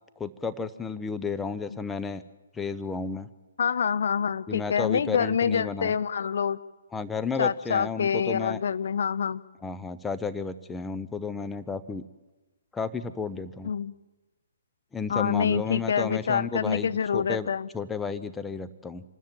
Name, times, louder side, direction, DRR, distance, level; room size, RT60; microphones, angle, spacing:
voice 1, 0.2-2.2 2.5-3.3 4.5-5.9 6.9-8.6 9.6-12.0 12.7-13.7 14.9-19.0, left 5 dB, 10° left, 10 dB, 0.7 m, -32 dB
voice 2, 3.6-6.6 7.4-9.4 13.6-13.9 15.1-17.7, left 7 dB, 55° left, 13 dB, 0.8 m, -26 dB
26.5 x 13.0 x 9.0 m, 1.1 s
figure-of-eight pair, 130°, 0 cm